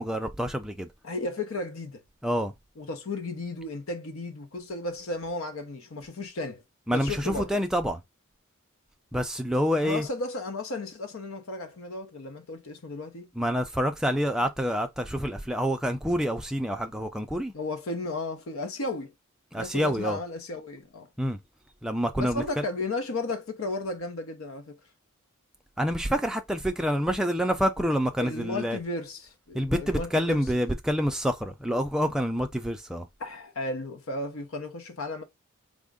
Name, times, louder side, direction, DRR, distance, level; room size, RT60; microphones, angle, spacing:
voice 1, 0.0-0.9 2.2-2.5 6.9-8.0 9.1-10.1 13.4-17.5 19.5-20.2 21.2-21.4 21.8-22.6 25.8-28.8 29.5-33.1, equal, 5° right, 0.4 m, -27 dB
voice 2, 1.0-2.0 2.8-6.6 6.9-7.5 9.8-13.3 17.5-19.1 19.6-21.1 22.2-24.8 28.2-30.5 33.2-35.2, left 2 dB, 75° left, 0.7 m, -34 dB
3.6 x 2.1 x 3.5 m
head